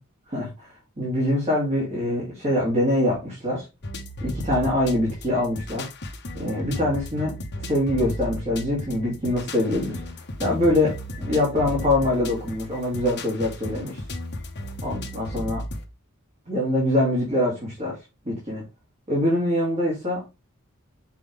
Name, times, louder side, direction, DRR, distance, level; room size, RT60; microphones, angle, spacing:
voice 1, 0.3-3.7 4.2-5.9 6.3-10.1 10.4-14.0 14.8-15.6 16.5-18.6 19.1-20.2, left 1 dB, 30° right, 2.8 m, -24 dB
sound 1, 3.8-15.8, left 1 dB, 55° left, 1.1 m, -35 dB
7.0 x 4.8 x 3.5 m
head